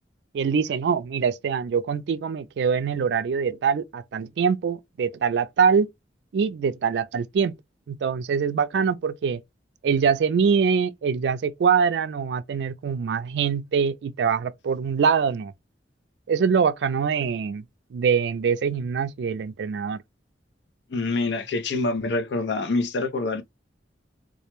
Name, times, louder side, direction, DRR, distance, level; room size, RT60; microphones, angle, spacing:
voice 1, 0.3-5.9 6.3-7.6 7.9-9.4 9.8-15.5 16.3-17.6 17.9-20.0, right 6 dB, 70° right, 0.3 m, -24 dB
voice 2, 20.9-23.4, left 3 dB, 70° left, 0.5 m, -26 dB
2.3 x 2.1 x 2.9 m
head